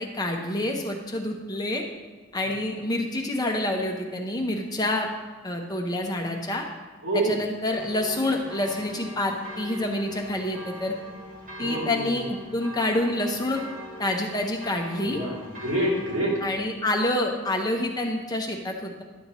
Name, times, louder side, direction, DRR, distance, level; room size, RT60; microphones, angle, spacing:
voice 1, 0.0-1.8 2.3-5.1 5.4-6.6 7.1-10.9 11.6-13.6 14.0-15.2 16.4-19.0, left 1 dB, 20° left, 2 dB, 0.7 m, -27 dB
sound 1, 7.7-16.6, left 1 dB, 40° right, 1.1 m, -41 dB
voice 2, 11.6-12.2 15.0-16.3, right 1 dB, 80° right, -3 dB, 2.5 m, -27 dB
11.0 x 7.1 x 3.0 m, 1.3 s
head